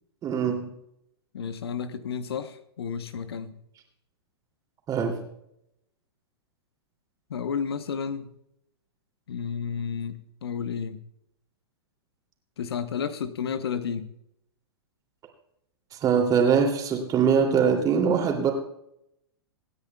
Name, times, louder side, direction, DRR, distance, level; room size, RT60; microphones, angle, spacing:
voice 1, 0.2-0.7 4.9-5.2 15.9-18.5, right 6 dB, 25° right, 2 dB, 2.8 m, -22 dB
voice 2, 1.3-3.6 7.3-8.3 9.3-11.0 12.6-14.1, left 7 dB, 70° left, 12 dB, 1.0 m, -32 dB
26.5 x 9.5 x 2.3 m, 0.79 s
hypercardioid pair, 110°, 13 cm